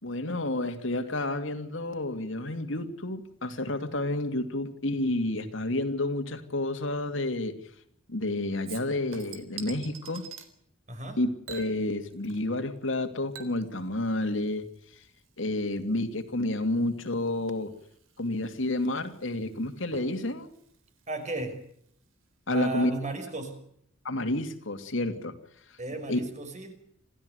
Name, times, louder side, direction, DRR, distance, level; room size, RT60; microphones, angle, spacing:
voice 1, 0.0-7.6 8.1-10.3 11.2-14.7 15.4-17.7 18.2-20.5 22.5-22.9 24.0-25.3 26.1-26.2, left 1 dB, 70° left, 7 dB, 2.7 m, -30 dB
Chink clink / Liquid, 8.7-10.5 11.5-12.6 12.9-21.9 22.2-22.3, right 6 dB, 75° right, 3.7 m, -48 dB
voice 2, 10.9-11.2 21.1-21.6 22.5-23.6 25.8-26.7, right 2 dB, 35° right, 7 dB, 5.5 m, -34 dB
27.5 x 16.0 x 8.2 m, 0.69 s
head